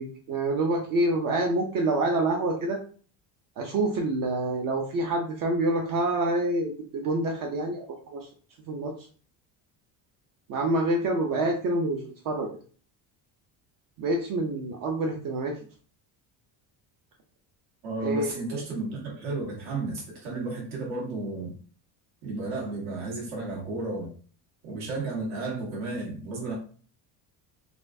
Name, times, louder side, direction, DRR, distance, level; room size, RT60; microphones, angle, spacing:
voice 1, 0.0-2.8 3.6-8.3 8.7-8.9 10.5-12.6 14.0-15.6 18.0-18.6, right 2 dB, 45° right, 1 dB, 0.5 m, -27 dB
voice 2, 17.8-21.5 22.2-24.1 24.6-26.5, right 2 dB, 75° right, -3 dB, 1.6 m, -33 dB
4.1 x 2.4 x 2.6 m, 0.43 s
cardioid pair, 175°, 46 cm